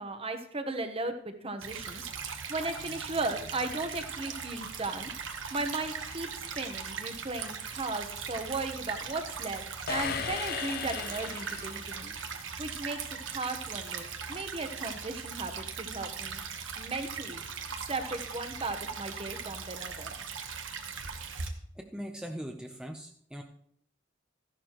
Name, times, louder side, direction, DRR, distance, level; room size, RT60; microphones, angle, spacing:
voice 1, 0.0-2.1 2.5-5.1 5.5-12.1 12.6-16.4 16.8-17.4 17.8-20.1, right 3 dB, 30° right, 7 dB, 1.1 m, -36 dB
Stream / Trickle dribble, 1.6-21.5, right 6 dB, 70° right, 1.3 m, -39 dB
sound 1, 9.9-12.1, left 7 dB, 50° left, 0.5 m, -36 dB
voice 2, 21.8-23.4, equal, 5° right, 3 dB, 0.6 m, -40 dB
14.0 x 11.5 x 3.1 m, 0.65 s
head